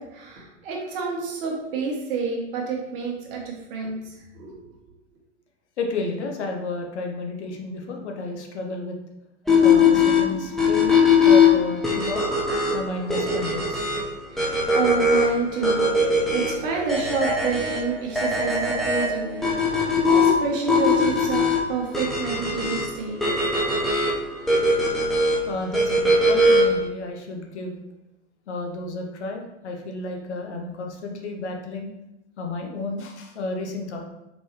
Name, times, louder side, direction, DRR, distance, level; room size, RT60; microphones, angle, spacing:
voice 1, 0.0-4.5 14.3-23.2, right 4 dB, 45° right, -1 dB, 1.3 m, -29 dB
voice 2, 5.8-9.0 9.6-11.0 11.2-12.3 12.7-13.9 25.5-27.8 28.5-31.9 32.4-34.1, left 3 dB, 65° left, 2 dB, 0.8 m, -31 dB
sound 1, 9.5-26.9, left 3 dB, ahead, 0.4 m, -21 dB
3.9 x 3.8 x 2.9 m, 0.90 s
figure-of-eight pair, 90°, 37 cm